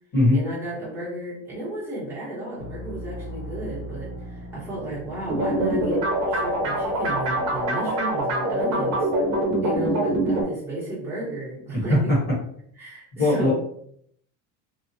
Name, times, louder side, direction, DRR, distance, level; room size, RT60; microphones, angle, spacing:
voice 1, 0.3-9.1 9.6-12.1 12.8-13.5, right 1 dB, 5° right, -8 dB, 1.0 m, -33 dB
sound 1, 2.6-7.7, equal, 50° left, 1.0 m, -39 dB
sound 2, 5.3-10.4, right 1 dB, 45° right, 0.9 m, -24 dB
voice 2, 11.7-12.2 13.2-13.5, left 1 dB, 25° left, -7 dB, 1.1 m, -19 dB
2.8 x 2.4 x 2.7 m, 0.68 s
cardioid pair, 170°, 40 cm